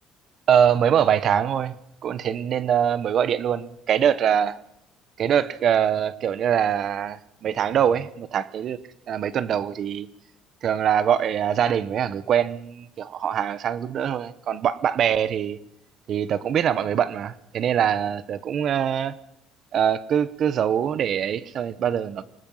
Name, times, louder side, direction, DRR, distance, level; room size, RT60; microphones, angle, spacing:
voice 1, 0.5-1.7 2.0-4.6 5.2-8.8 9.1-10.1 10.6-15.6 16.1-19.2 19.7-22.2, right 9 dB, 45° right, 0.9 m, -23 dB
27.5 x 19.5 x 5.6 m
cardioid pair, 150°, 0 cm